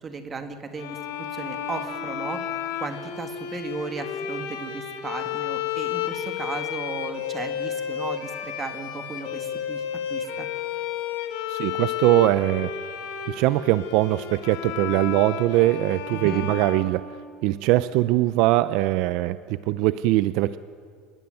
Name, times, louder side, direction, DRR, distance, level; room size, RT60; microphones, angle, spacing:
voice 1, 0.0-2.4 2.8-9.8 10.1-10.5 16.1-16.5, right 4 dB, 20° right, 7 dB, 1.9 m, -35 dB
sound 1, 0.7-17.6, left 9 dB, 75° left, 3.4 m, -32 dB
voice 2, 11.5-12.7 13.3-17.0 17.4-20.6, right 16 dB, 55° right, 14 dB, 0.5 m, -21 dB
27.0 x 20.0 x 9.2 m, 2.1 s
cardioid pair, 170°, 0 cm